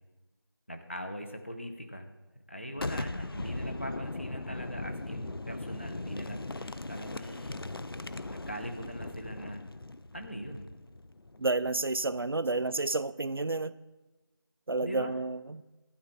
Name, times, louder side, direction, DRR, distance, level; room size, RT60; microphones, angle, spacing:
voice 1, 0.7-2.1 2.5-7.6 8.3-9.6 10.1-10.7 14.8-15.1, equal, 30° left, 5 dB, 0.8 m, -41 dB
Boom, 2.7-12.3, left 2 dB, 70° left, 0.6 m, -39 dB
voice 2, 11.4-13.7 14.7-15.6, right 3 dB, 70° right, 15 dB, 0.4 m, -30 dB
12.5 x 10.0 x 3.8 m, 1.1 s
figure-of-eight pair, 180°, 13 cm